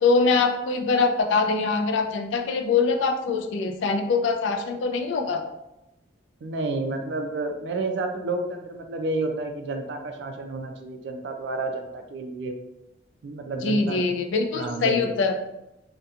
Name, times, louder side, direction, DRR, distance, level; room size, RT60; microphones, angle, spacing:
voice 1, 0.0-5.4 13.6-15.3, left 4 dB, 80° left, 5 dB, 0.3 m, -23 dB
voice 2, 6.4-12.6 13.2-14.0 14.5-15.2, right 2 dB, 70° right, 5 dB, 0.4 m, -30 dB
2.7 x 2.2 x 2.4 m, 0.91 s
head